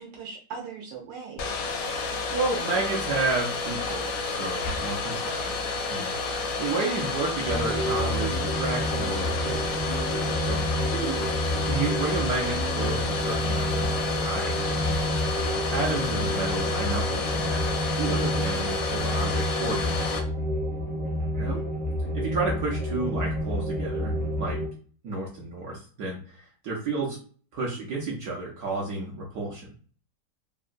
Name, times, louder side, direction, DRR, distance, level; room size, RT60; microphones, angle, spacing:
voice 1, 0.0-1.5 10.7-11.4 21.3-21.6, right 6 dB, 80° right, 0 dB, 1.3 m, -38 dB
Domestic sounds home sounds, 1.4-20.2, left 3 dB, 70° left, 0.8 m, -30 dB
voice 2, 2.3-5.6 5.9-9.9 10.4-10.7 11.7-15.0 15.5-20.2 21.4-21.6 22.1-24.6 25.0-27.2 27.5-29.7, right 3 dB, 65° right, -3 dB, 1.1 m, -31 dB
sound 1, 5.9-19.3, left 1 dB, 85° left, 1.4 m, -46 dB
sound 2, 7.5-24.7, equal, 30° right, 0.6 m, -29 dB
3.6 x 2.1 x 2.4 m, 0.42 s
omnidirectional pair, 1.9 m